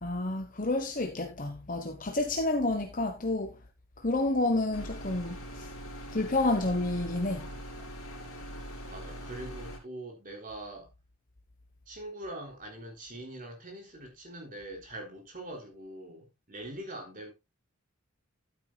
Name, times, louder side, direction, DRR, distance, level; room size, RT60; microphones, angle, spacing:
voice 1, 0.0-3.5 4.0-5.7 6.1-7.5, left 2 dB, 35° left, 1.0 m, -29 dB
sound 1, 4.7-9.8, equal, 85° left, 3.7 m, -42 dB
voice 2, 8.9-10.9 11.9-17.3, right 1 dB, 40° right, 3.6 m, -43 dB
12.5 x 8.8 x 2.3 m
head